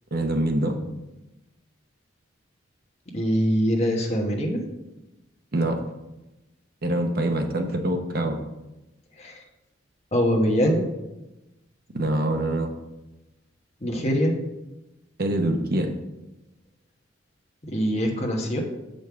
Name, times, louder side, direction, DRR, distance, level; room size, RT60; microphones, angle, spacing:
voice 1, 0.1-0.8 5.5-5.8 6.8-8.4 11.9-12.7 15.2-15.9, right 1 dB, 50° right, 5 dB, 0.8 m, -24 dB
voice 2, 3.1-4.6 9.2-9.4 10.1-10.8 13.8-14.3 17.6-18.6, equal, 35° left, 1 dB, 1.2 m, -23 dB
7.6 x 5.3 x 4.7 m, 0.98 s
head